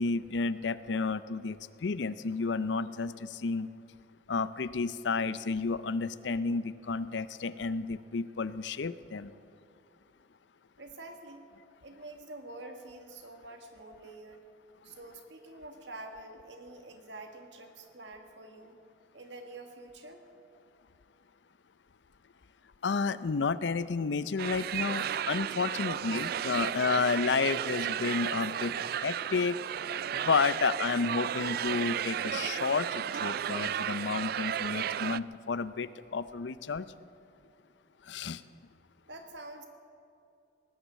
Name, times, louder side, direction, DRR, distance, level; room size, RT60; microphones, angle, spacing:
voice 1, 0.0-3.7 4.3-9.3 22.8-28.7 29.0-29.6 30.1-36.9 38.1-38.4, left 4 dB, 80° left, 15 dB, 0.5 m, -31 dB
voice 2, 10.8-11.4 11.8-14.5 14.8-18.8 19.1-20.2 39.1-39.7, right 2 dB, 80° right, 5 dB, 1.8 m, -47 dB
sound 1, 24.4-35.2, right 9 dB, 55° right, 0.3 m, -34 dB
18.5 x 10.0 x 7.5 m, 2.6 s
head